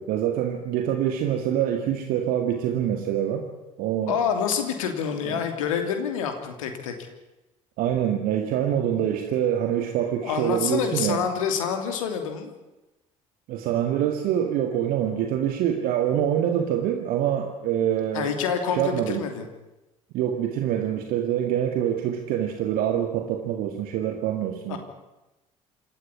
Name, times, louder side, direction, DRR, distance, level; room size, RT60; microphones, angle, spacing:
voice 1, 0.0-3.5 3.8-4.2 5.3-5.4 7.8-11.2 13.5-18.3 18.7-19.3 20.1-24.8, right 10 dB, 55° right, 5 dB, 2.0 m, -25 dB
voice 2, 4.1-7.1 10.2-12.5 18.1-19.5 24.7-24.8, left 7 dB, 70° left, 6 dB, 3.0 m, -27 dB
27.0 x 13.5 x 9.8 m, 1.0 s
figure-of-eight pair, 55°, 18 cm